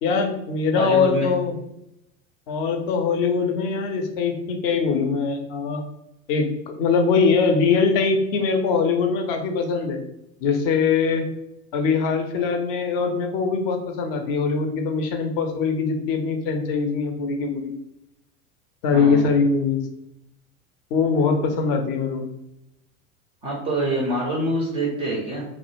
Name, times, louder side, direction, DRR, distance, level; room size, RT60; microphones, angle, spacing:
voice 1, 0.0-1.5 2.5-5.8 6.3-10.0 10.4-11.3 11.7-17.7 18.8-19.8 20.9-22.3, left 5 dB, 45° left, 4 dB, 0.5 m, -22 dB
voice 2, 0.7-1.3 18.9-19.3 23.4-25.5, right 1 dB, 15° right, -3 dB, 0.3 m, -25 dB
2.1 x 2.0 x 2.9 m, 0.84 s
figure-of-eight pair, 80°, 40 cm